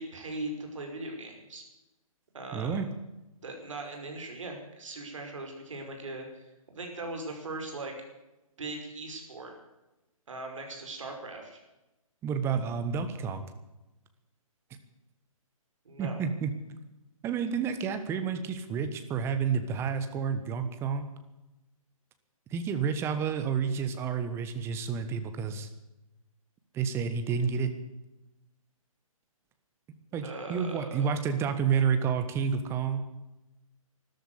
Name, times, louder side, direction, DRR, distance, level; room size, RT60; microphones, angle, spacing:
voice 1, 0.0-1.6 2.3-2.9 3.4-7.9 8.6-9.5 10.3-11.6 15.9-16.2 30.2-31.2, right 2 dB, 60° right, 3 dB, 5.4 m, -39 dB
voice 2, 2.5-2.9 12.2-13.4 16.0-16.5 17.2-21.1 22.5-25.7 26.7-27.7 30.1-33.0, right 6 dB, 15° right, 9 dB, 1.2 m, -30 dB
13.5 x 12.5 x 8.3 m, 0.99 s
figure-of-eight pair, 135°, 18 cm